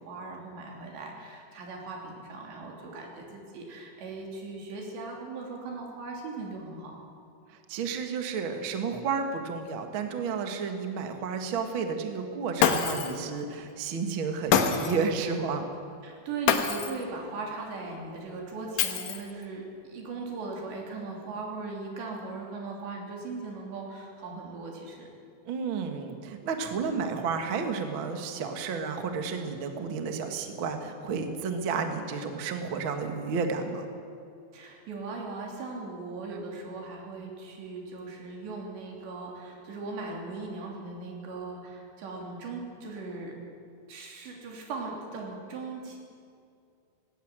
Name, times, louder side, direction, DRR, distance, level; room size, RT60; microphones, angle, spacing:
voice 1, 0.0-7.0 16.0-25.1 34.5-43.3 43.9-46.0, right 3 dB, 85° right, -1 dB, 5.4 m, -39 dB
voice 2, 7.5-15.7 25.4-33.9 36.2-36.4 36.6-36.7, right 5 dB, 60° right, 5 dB, 1.3 m, -32 dB
Shatter, 12.6-13.2 14.5-15.1 16.5-17.0 18.8-19.4, left 7 dB, 65° left, 2.3 m, -25 dB
19.0 x 17.0 x 8.9 m, 2.4 s
omnidirectional pair, 4.9 m